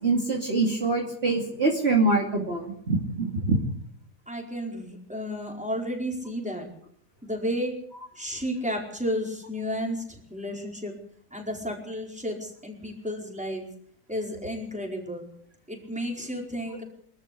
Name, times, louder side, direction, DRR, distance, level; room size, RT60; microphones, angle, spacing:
voice 1, 0.0-3.6 7.9-8.0, right 3 dB, 35° right, 0 dB, 3.0 m, -24 dB
voice 2, 4.3-6.7 7.2-7.7 8.2-10.9 11.3-13.6 14.1-15.3 15.7-16.8, equal, 5° right, 1 dB, 4.8 m, -32 dB
24.0 x 13.5 x 8.5 m, 0.63 s
omnidirectional pair, 1.8 m